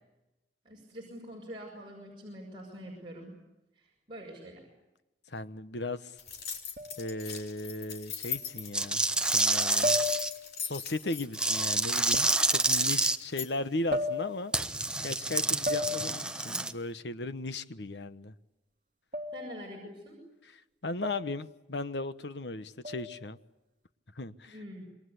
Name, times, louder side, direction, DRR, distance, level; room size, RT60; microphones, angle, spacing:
voice 1, 0.6-3.4 3.7-4.7 19.3-20.2 24.5-24.8, equal, 30° right, 6.5 m, -45 dB
voice 2, 5.3-6.1 7.0-9.0 9.3-10.0 10.6-14.5 15.0-18.3 20.8-23.4 24.2-24.5, left 2 dB, 75° left, 1.2 m, -36 dB
sound 1, 6.2-13.5, left 7 dB, 60° left, 4.1 m, -41 dB
sound 2, 6.8-7.1 8.3-8.4 9.8-10.6 12.1-12.3 13.9-14.6 15.7-16.3 19.1-19.6 21.0-21.4 22.8-23.3, left 2 dB, 50° right, 2.5 m, -34 dB
sound 3, 8.7-10.3 11.3-13.2 14.5-16.7, right 2 dB, 5° right, 1.0 m, -28 dB
27.5 x 22.5 x 8.3 m
head